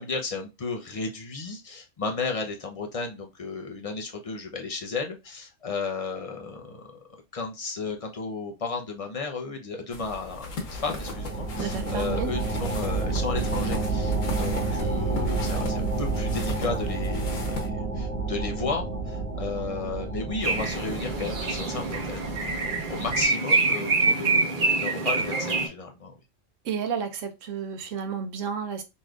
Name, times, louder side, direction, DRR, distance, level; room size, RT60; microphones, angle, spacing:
voice 1, 0.0-6.8 7.3-22.3 22.9-26.1, left 4 dB, 35° left, 3 dB, 0.6 m, -34 dB
sound 1, 9.9-17.7, left 4 dB, 90° left, 1.3 m, -38 dB
sound 2, 10.4-23.2, right 3 dB, 10° right, 1.1 m, -30 dB
voice 2, 11.6-12.3 23.0-23.1 26.6-28.8, right 7 dB, 80° right, 7 dB, 1.1 m, -31 dB
sound 3, 20.4-25.7, right 3 dB, 45° right, 0.9 m, -25 dB
4.0 x 3.1 x 2.4 m, 0.25 s
omnidirectional pair, 1.3 m